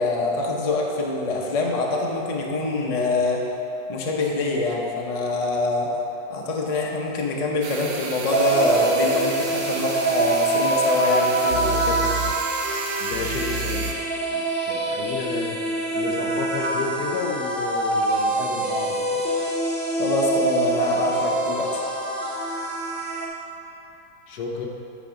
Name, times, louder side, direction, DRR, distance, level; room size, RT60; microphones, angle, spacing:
voice 1, 0.0-3.4 3.9-5.9 6.3-12.1 20.0-21.8, left 2 dB, 50° left, -1 dB, 0.4 m, -25 dB
sound 1, 7.6-13.9, right 4 dB, 75° right, 0.6 m, -32 dB
sound 2, 8.3-23.3, right 2 dB, 35° right, 1.0 m, -25 dB
voice 2, 13.0-14.0 14.3-19.2 24.3-24.7, left 4 dB, 65° left, 1 dB, 1.2 m, -32 dB
9.2 x 4.1 x 5.2 m, 3.0 s
omnidirectional pair, 1.9 m